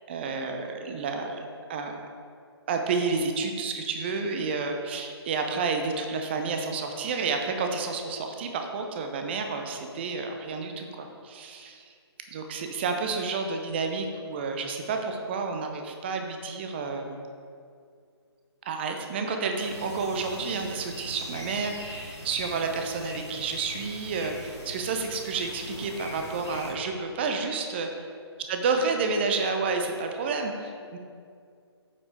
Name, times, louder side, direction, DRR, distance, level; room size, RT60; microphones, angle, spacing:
voice 1, 0.1-2.0 2.7-11.8 12.3-17.2 18.6-27.9 28.5-31.0, right 4 dB, 25° right, 4 dB, 0.6 m, -30 dB
sound 1, 19.6-26.7, left 1 dB, 90° left, 2.1 m, -42 dB
8.3 x 5.4 x 4.5 m, 2.3 s
figure-of-eight pair, 140°, 14 cm